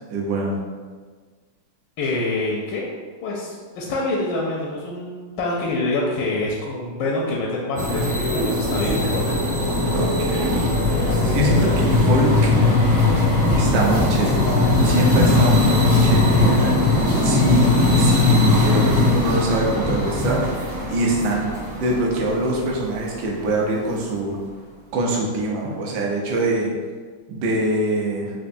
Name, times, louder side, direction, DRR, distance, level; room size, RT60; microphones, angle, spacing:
voice 1, 0.1-0.5 9.9-10.8 11.0-12.5 13.5-17.7 18.0-24.4 24.9-26.7 27.3-28.3, right 2 dB, 70° right, -2 dB, 1.1 m, -24 dB
voice 2, 2.0-2.9 3.2-9.3, left 2 dB, 75° left, -3 dB, 1.1 m, -26 dB
sound 1, 7.8-23.1, left 2 dB, 50° right, 0.8 m, -19 dB
4.4 x 2.4 x 2.6 m, 1.5 s
omnidirectional pair, 2.3 m